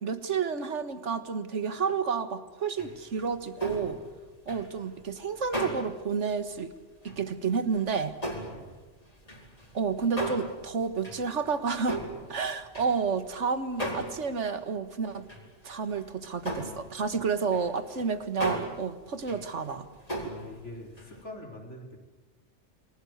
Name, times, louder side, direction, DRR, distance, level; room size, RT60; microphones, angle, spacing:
voice 1, 0.0-4.0 4.5-6.7 7.0-8.1 9.7-12.0 12.3-15.3 15.6-19.9, right 5 dB, 80° right, 11 dB, 1.8 m, -30 dB
sound 1, 2.8-6.1 6.5-6.6 7.0-7.3 7.7-13.4 13.8-14.3 14.5-14.6 15.1-15.5 15.8-16.1 16.3-21.2, right 1 dB, 30° left, 4.7 m, -37 dB
voice 2, 20.3-22.0, left 2 dB, 80° left, 1 dB, 4.7 m, -44 dB
28.5 x 21.0 x 8.1 m, 1.3 s
omnidirectional pair, 1.2 m